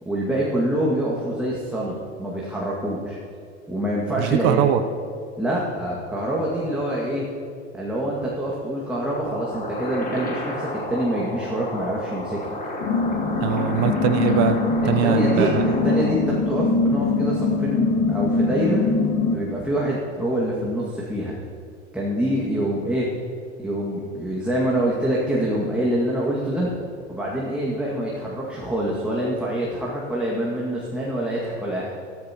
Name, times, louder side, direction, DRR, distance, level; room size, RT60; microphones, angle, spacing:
voice 1, 0.0-3.2 3.7-4.6 5.4-7.3 7.7-12.5 15.0-15.5 15.8-18.9 19.3-21.3 21.9-23.1 23.6-26.7 27.1-31.9, right 1 dB, 5° right, -5 dB, 2.1 m, -25 dB
voice 2, 4.2-4.8 13.4-14.6 14.8-15.6, right 10 dB, 50° right, 10 dB, 0.8 m, -22 dB
sound 1, 9.1-16.1, left 1 dB, 25° left, 3.0 m, -32 dB
sound 2, 12.8-19.4, left 4 dB, 45° left, 1.4 m, -22 dB
14.0 x 14.0 x 3.0 m, 2.3 s
figure-of-eight pair, 70°, 34 cm